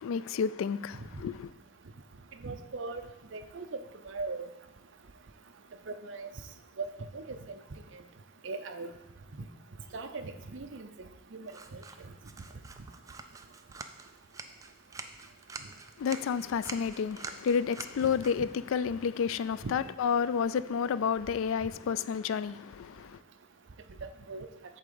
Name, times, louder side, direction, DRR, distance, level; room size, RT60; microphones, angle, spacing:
voice 1, 0.0-1.5 16.0-23.1, left 6 dB, 75° left, 0.3 m, -30 dB
voice 2, 2.4-3.0 3.3-3.8 4.1-4.5 5.9-6.3 6.8-7.6 8.4-8.9 9.9-10.9 11.3-11.8 19.6-19.7 24.0-24.5, right 3 dB, 60° right, 0.6 m, -39 dB
sound 1, 11.5-20.6, right 4 dB, 15° right, 0.3 m, -47 dB
8.5 x 3.6 x 6.8 m
head